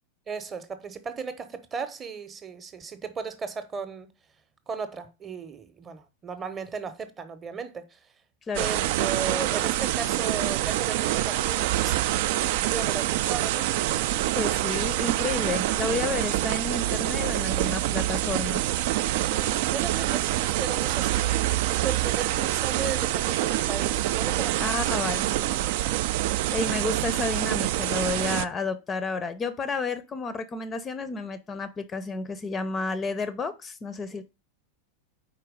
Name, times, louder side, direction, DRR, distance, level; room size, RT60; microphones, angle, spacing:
voice 1, 0.3-4.1 4.7-8.0 8.6-12.0 12.3-13.7 19.1-24.9 25.3-25.4 34.1-34.2, right 5 dB, 20° right, 0.8 m, -36 dB
sound 1, 8.5-28.4, right 14 dB, 50° right, 0.3 m, -26 dB
voice 2, 14.4-18.7 24.6-25.3 26.5-34.2, left 3 dB, 20° left, 0.5 m, -31 dB
4.6 x 4.5 x 5.0 m
figure-of-eight pair, 90°, 0 cm